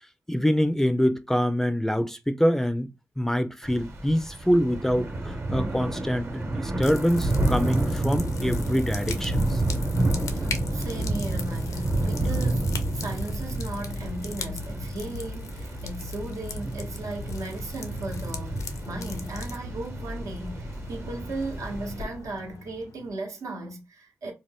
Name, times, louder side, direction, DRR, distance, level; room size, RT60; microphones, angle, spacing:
voice 1, 0.3-2.9 3.2-9.6, equal, 5° left, 0.4 m, -25 dB
Thunder / Rain, 3.6-22.0, right 1 dB, 50° right, 1.0 m, -29 dB
sound 1, 6.8-23.1, left 5 dB, 80° left, 0.5 m, -41 dB
voice 2, 10.4-12.7 12.9-24.3, right 2 dB, 80° right, 0.9 m, -36 dB
2.5 x 2.1 x 3.4 m
cardioid pair, 65°, 5 cm